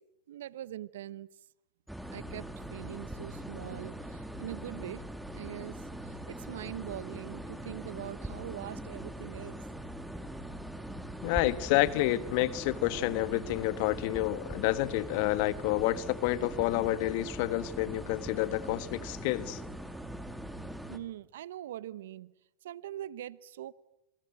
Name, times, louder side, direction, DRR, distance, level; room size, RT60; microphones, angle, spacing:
voice 1, 0.3-1.3 2.1-5.0 5.3-5.8 6.0-9.6 20.9-22.3 22.6-23.7, right 13 dB, 75° right, 1.0 m, -42 dB
sound 1, 1.9-21.0, right 1 dB, ahead, 2.5 m, -42 dB
voice 2, 11.2-19.6, left 16 dB, 55° left, 1.4 m, -29 dB
28.0 x 23.0 x 9.0 m
hypercardioid pair, 115°, 0 cm